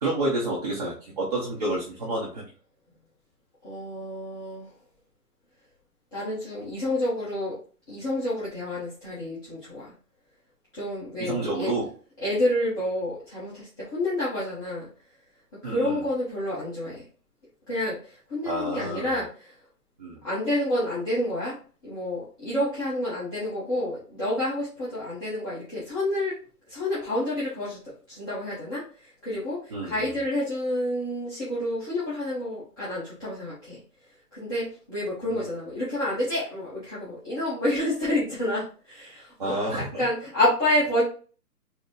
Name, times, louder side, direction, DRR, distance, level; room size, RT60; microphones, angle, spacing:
voice 1, 0.0-2.4 11.2-11.9 15.6-16.0 18.4-19.1 20.0-20.2 29.7-30.1 35.3-35.4 39.4-40.0, right 2 dB, 25° right, -5 dB, 0.6 m, -29 dB
voice 2, 3.6-4.7 6.1-7.6 7.9-9.9 10.7-11.7 12.2-14.9 15.6-17.1 17.7-19.5 20.2-21.6 21.8-26.3 26.7-27.8 28.1-33.8 34.3-39.5 40.0-41.0, left 1 dB, 15° left, -10 dB, 0.8 m, -29 dB
4.0 x 2.1 x 3.9 m, 0.40 s
figure-of-eight pair, 145°, 47 cm